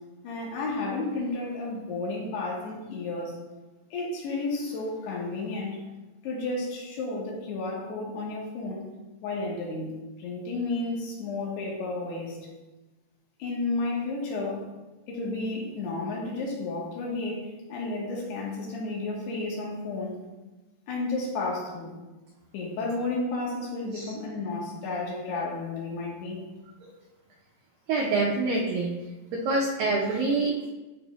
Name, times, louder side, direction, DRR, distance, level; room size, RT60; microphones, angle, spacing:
voice 1, 0.2-3.4 3.9-5.8 6.2-8.9 9.2-9.9 10.2-12.4 13.4-14.6 15.1-20.2 20.9-21.9 22.5-26.4, left 3 dB, 75° left, -3 dB, 3.2 m, -32 dB
voice 2, 27.9-28.9 29.3-30.7, right 3 dB, 85° right, -2 dB, 2.0 m, -26 dB
12.0 x 4.3 x 2.3 m, 1.1 s
omnidirectional pair, 5.0 m